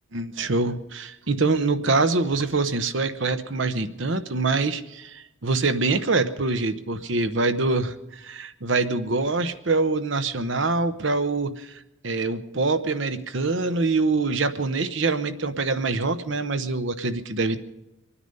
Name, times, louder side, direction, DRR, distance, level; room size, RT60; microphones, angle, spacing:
voice 1, 0.1-17.6, right 3 dB, 60° right, 10 dB, 0.9 m, -25 dB
25.0 x 10.0 x 5.4 m, 0.94 s
head